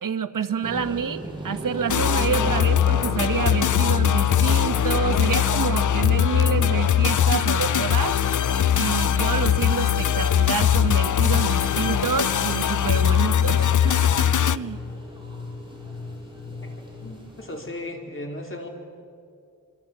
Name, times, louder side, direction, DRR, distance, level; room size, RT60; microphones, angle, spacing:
voice 1, 0.0-8.2 8.7-14.8, right 6 dB, 90° right, 11 dB, 1.3 m, -28 dB
sound 1, 0.6-17.7, right 1 dB, 15° right, 6.8 m, -40 dB
sound 2, 1.9-14.6, left 9 dB, 65° left, 0.6 m, -21 dB
sound 3, 2.0-17.2, left 3 dB, 85° left, 5.1 m, -38 dB
voice 2, 17.0-18.7, left 1 dB, 40° left, 2 dB, 4.5 m, -35 dB
25.5 x 24.0 x 8.8 m, 2.3 s
wide cardioid pair, 80°, 32 cm